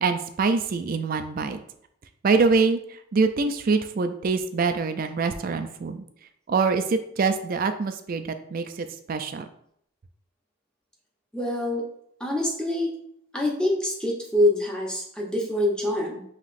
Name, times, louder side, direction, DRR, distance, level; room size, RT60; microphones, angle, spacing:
voice 1, 0.0-1.6 2.2-6.0 6.5-9.4, right 4 dB, 45° right, 9 dB, 0.4 m, -24 dB
voice 2, 11.3-11.8 12.2-12.9 13.3-16.2, left 1 dB, 5° left, -2 dB, 0.8 m, -25 dB
5.6 x 3.0 x 2.5 m, 0.69 s
head